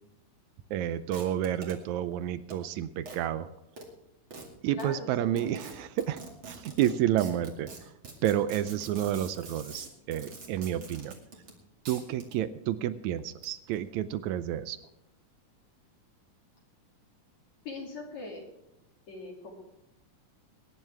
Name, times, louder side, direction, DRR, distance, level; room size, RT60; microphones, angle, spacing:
voice 1, 0.7-3.5 4.6-7.9 8.2-11.2 11.9-14.8, right 11 dB, 80° right, 13 dB, 1.7 m, -30 dB
sound 1, 1.1-1.7 2.5-2.6 3.1-3.2 3.8-3.9 4.3-4.4 4.8-4.9 5.4-11.6 11.9-12.4 13.3-13.8, right 4 dB, 40° right, 2.9 m, -45 dB
voice 2, 4.7-5.5 17.6-18.4 19.1-19.5, left 2 dB, 60° left, -2 dB, 3.6 m, -41 dB
22.5 x 10.5 x 3.5 m, 0.88 s
omnidirectional pair, 3.7 m